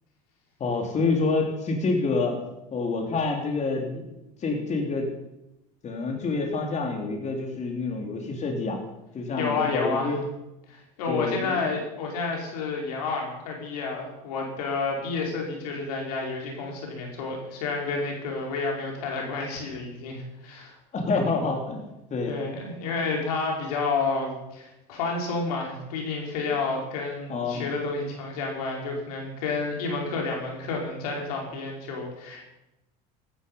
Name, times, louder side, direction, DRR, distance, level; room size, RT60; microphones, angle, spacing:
voice 1, 0.6-2.4 2.7-5.1 5.8-8.8 9.1-10.2 11.1-11.7 14.9-15.0 20.9-22.3 23.0-23.1 27.3-27.7, left 3 dB, 40° left, 2 dB, 3.9 m, -27 dB
voice 2, 9.4-10.2 10.7-20.7 22.3-32.4, left 4 dB, 85° left, 0 dB, 5.1 m, -30 dB
15.5 x 13.0 x 5.6 m, 0.91 s
supercardioid pair, 90°, 19 cm